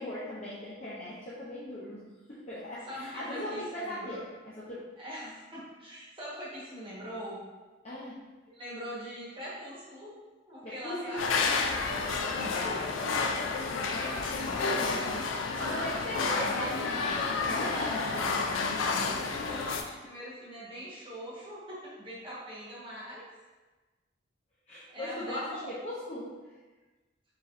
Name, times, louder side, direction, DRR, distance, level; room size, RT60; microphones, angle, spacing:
voice 1, 0.0-2.0 2.3-4.8 7.8-8.2 10.6-11.3 12.8-13.1 15.6-17.9 18.2-18.5 24.7-26.3, left 1 dB, 35° left, -9 dB, 0.6 m, -38 dB
voice 2, 2.9-4.2 5.0-7.4 8.5-10.2 10.4-13.3 13.8-15.2 15.8-16.2 17.6-18.3 19.0-23.2 24.9-25.8, equal, 25° right, -7 dB, 1.2 m, -42 dB
sound 1, 11.2-19.8, left 4 dB, 90° left, 0.4 m, -30 dB
4.8 x 3.1 x 2.5 m, 1.2 s
head